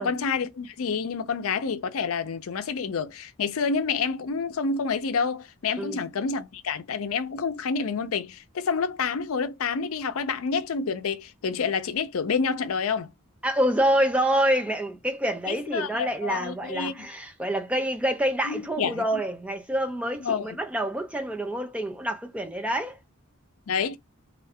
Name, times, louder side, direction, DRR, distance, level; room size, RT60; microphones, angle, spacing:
voice 1, 0.0-13.1 15.5-17.1 18.4-19.2 20.2-20.6 23.7-24.0, left 5 dB, 80° left, 0.5 m, -28 dB
voice 2, 13.4-23.0, right 1 dB, 5° right, 0.4 m, -27 dB
2.4 x 2.2 x 3.4 m
head